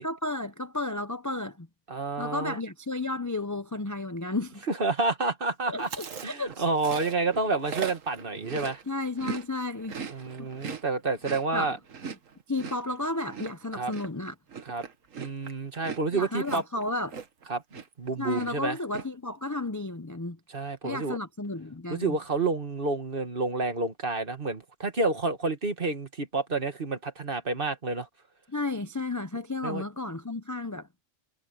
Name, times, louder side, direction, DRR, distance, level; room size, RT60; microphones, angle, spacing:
voice 1, 0.0-1.7 2.2-4.6 5.7-6.6 8.9-10.5 11.5-11.7 12.5-14.3 16.1-17.2 18.2-20.4 20.8-22.2 28.5-30.9, left 2 dB, 20° left, 0.6 m, -33 dB
voice 2, 1.9-2.6 4.7-5.9 6.2-8.8 10.1-11.8 13.7-13.9 14.7-14.8 15.2-16.6 17.5-17.6 18.0-18.8 20.5-21.2 21.9-28.1 29.6-29.8, right 3 dB, 45° right, 1.9 m, -29 dB
Chewing mastication, 5.8-9.5 9.7-17.5 17.7-18.1 18.3-19.0, right 5 dB, 80° right, 1.8 m, -39 dB
omnidirectional pair, 1.3 m